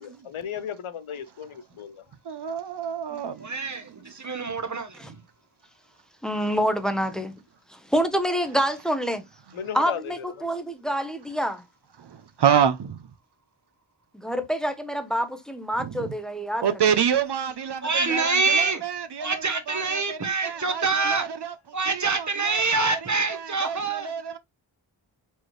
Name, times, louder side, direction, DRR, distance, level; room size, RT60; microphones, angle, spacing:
voice 1, 0.0-2.0 9.5-10.0, left 8 dB, 75° left, 0.7 m, -35 dB
voice 2, 2.3-3.5 12.0-13.0 15.8-16.1 16.6-21.5 21.9-22.6 22.9-23.0 23.3-24.4, right 8 dB, 55° right, 0.5 m, -28 dB
voice 3, 3.4-5.2 17.8-18.8 19.2-21.3 21.7-24.1, right 4 dB, 35° right, 0.9 m, -26 dB
voice 4, 6.2-7.3 7.9-9.2 9.7-11.6 14.1-16.6, equal, ahead, 0.7 m, -26 dB
4.4 x 3.1 x 3.1 m
wide cardioid pair, 50°, 49 cm